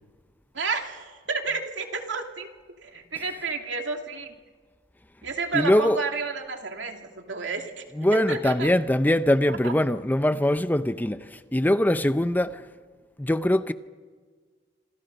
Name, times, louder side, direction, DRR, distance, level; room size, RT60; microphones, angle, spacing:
voice 1, 0.5-2.5 2.8-4.3 5.2-7.8 8.1-8.7 9.5-9.7, right 4 dB, 75° right, 2.8 m, -31 dB
voice 2, 5.5-6.0 7.9-12.6 13.2-13.7, left 1 dB, 10° left, 0.6 m, -22 dB
27.0 x 27.0 x 5.4 m
head